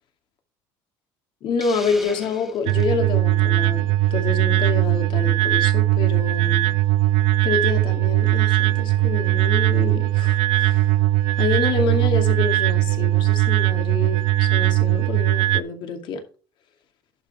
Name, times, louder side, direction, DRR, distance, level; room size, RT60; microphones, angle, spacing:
voice 1, 1.4-6.7 7.4-10.9 11.4-16.2, left 5 dB, 55° left, 2.3 m, -27 dB
Hiss, 1.6-3.0, equal, ahead, 1.5 m, -39 dB
sound 1, 2.7-15.6, right 15 dB, 75° right, 0.5 m, -19 dB
11.0 x 5.5 x 4.3 m
cardioid pair, 110°, 10 cm